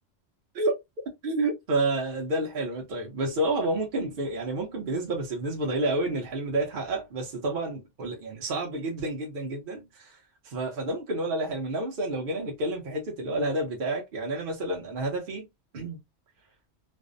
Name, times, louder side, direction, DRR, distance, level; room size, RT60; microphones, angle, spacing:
voice 1, 1.1-15.5 15.7-16.0, right 2 dB, 50° right, 0.9 m, -30 dB
2.5 x 2.1 x 2.5 m
omnidirectional pair, 1.2 m